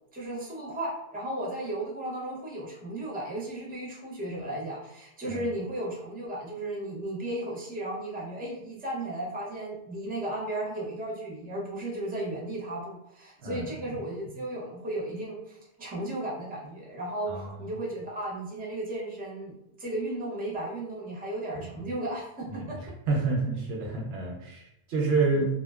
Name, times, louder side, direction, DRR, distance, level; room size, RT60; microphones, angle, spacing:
voice 1, 0.1-17.3 17.6-19.5 19.8-22.8 25.3-25.4, right 1 dB, 10° right, -4 dB, 0.4 m, -35 dB
voice 2, 13.4-13.7 17.3-17.6 21.5-21.6 22.5-22.6 23.1-25.4, right 3 dB, 90° right, 0 dB, 0.9 m, -28 dB
2.5 x 2.1 x 2.3 m, 0.81 s
omnidirectional pair, 1.0 m